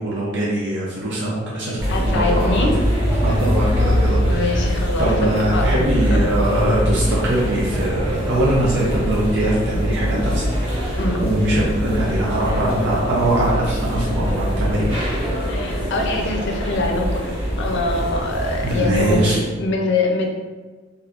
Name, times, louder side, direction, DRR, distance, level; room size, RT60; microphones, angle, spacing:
voice 1, 0.0-2.7 3.2-4.6 5.0-10.5 10.8-15.0 18.6-19.4, right 1 dB, 60° right, -6 dB, 0.6 m, -22 dB
sound 1, 1.8-19.3, equal, 25° right, 1.0 m, -23 dB
voice 2, 1.9-2.7 4.2-5.7 6.1-6.2 11.0-11.2 15.5-20.3, left 2 dB, 60° left, 1 dB, 0.5 m, -24 dB
2.7 x 2.5 x 3.4 m, 1.4 s
head